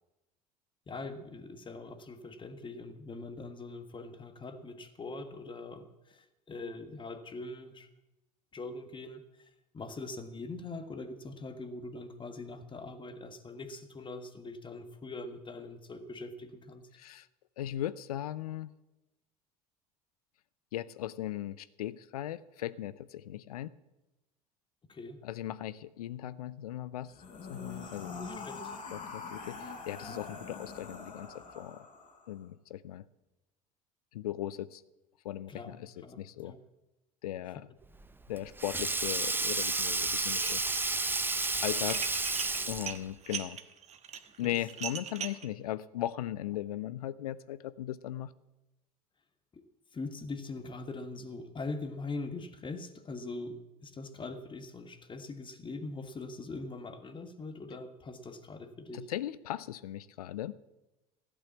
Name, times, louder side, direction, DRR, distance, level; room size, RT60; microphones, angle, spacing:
voice 1, 0.9-7.9 8.5-9.2 9.7-16.8 24.9-25.2 27.8-28.8 35.5-35.7 36.0-36.6 44.4-44.5 49.5-49.6 49.9-59.1, left 3 dB, 25° left, 9 dB, 1.6 m, -42 dB
voice 2, 16.9-17.3 17.6-18.7 20.7-23.7 25.2-27.1 27.5-28.2 28.9-31.9 32.3-33.0 34.1-34.8 35.2-36.5 37.2-37.7 38.3-40.6 41.6-42.0 42.7-43.6 44.4-48.3 58.9-60.6, left 13 dB, 75° left, 18 dB, 0.6 m, -38 dB
sound 1, 27.1-32.3, left 4 dB, 45° left, 3.7 m, -44 dB
Sink (filling or washing), 37.9-43.1, right 3 dB, 10° right, 0.8 m, -31 dB
Dishes pots and pans, 40.3-40.9 41.2-45.5, right 8 dB, 35° right, 1.2 m, -40 dB
15.0 x 8.7 x 7.3 m, 0.99 s
hypercardioid pair, 70°, 19 cm